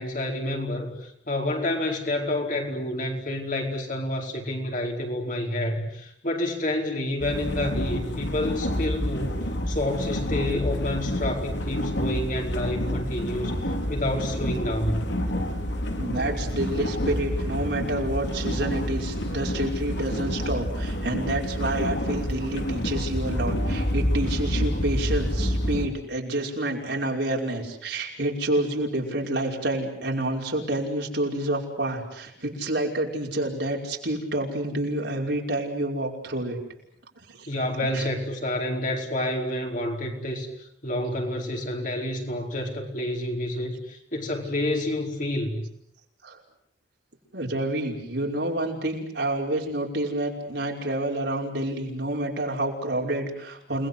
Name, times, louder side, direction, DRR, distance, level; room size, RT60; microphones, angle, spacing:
voice 1, 0.0-9.4 9.7-15.0 37.5-40.5 40.8-45.6, left 1 dB, 45° left, 1 dB, 4.9 m, -29 dB
sound 1, 7.2-25.9, equal, 70° left, 4.2 m, -28 dB
voice 2, 16.0-36.6 37.2-37.5 37.9-38.1 46.2-46.4 47.3-53.9, right 1 dB, 65° right, 0 dB, 5.5 m, -28 dB
29.5 x 21.0 x 8.2 m, 0.72 s
head